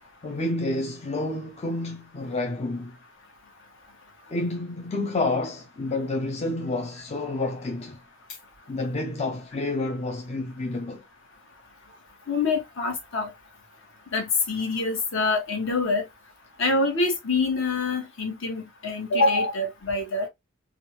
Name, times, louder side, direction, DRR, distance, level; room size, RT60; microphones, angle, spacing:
voice 1, 0.2-3.0 4.3-8.0 8.7-11.0, left 2 dB, 30° left, 0.4 m, -29 dB
voice 2, 12.3-13.3 14.1-16.1 16.6-20.3, left 3 dB, 60° left, 1.1 m, -25 dB
3.5 x 2.2 x 2.8 m
head